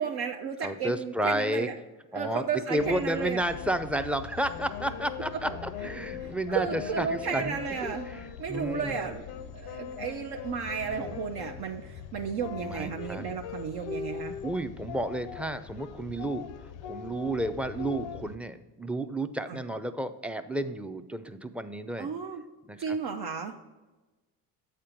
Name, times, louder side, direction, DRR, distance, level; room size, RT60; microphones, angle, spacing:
voice 1, 0.0-1.7 2.1-3.4 6.2-8.1 8.4-14.3 19.5-19.6 22.0-22.4 22.8-23.5, right 6 dB, 60° right, 3 dB, 0.7 m, -33 dB
voice 2, 0.6-1.7 2.1-2.4 2.7-9.0 12.6-13.2 14.4-16.4 16.8-22.1 22.7-23.0, right 1 dB, 5° right, 9 dB, 0.4 m, -32 dB
sound 1, 2.8-18.4, left 8 dB, 80° left, 0.6 m, -40 dB
8.1 x 4.4 x 5.0 m, 1.2 s
supercardioid pair, 65°, 43 cm